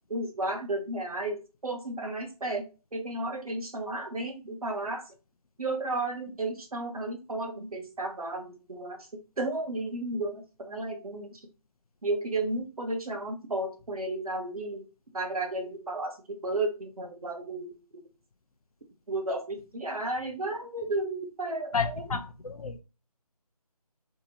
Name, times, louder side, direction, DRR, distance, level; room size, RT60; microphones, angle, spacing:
voice 1, 0.1-2.7 2.9-5.0 5.6-9.0 9.4-11.4 12.0-14.8 15.1-17.7 19.1-22.1, right 2 dB, 65° right, 0.8 m, -33 dB
voice 2, 21.7-22.8, left 5 dB, 65° left, 0.5 m, -31 dB
2.7 x 2.0 x 2.7 m
figure-of-eight pair, 165°, 20 cm